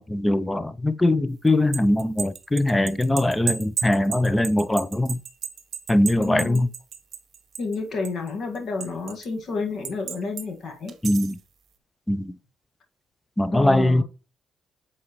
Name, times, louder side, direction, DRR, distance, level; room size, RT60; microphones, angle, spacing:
voice 1, 0.0-5.2 5.9-6.7 11.0-11.4 12.1-12.4 13.4-14.0, left 1 dB, 10° left, 0.5 m, -21 dB
sound 1, 1.5-7.8 8.1-9.3 9.9-10.5 10.9-11.4, right 8 dB, 60° right, 0.8 m, -33 dB
voice 2, 6.2-6.6 7.6-10.9 13.5-14.0, left 4 dB, 60° left, 1.6 m, -30 dB
7.4 x 4.2 x 3.0 m
cardioid pair, 90°, 0 cm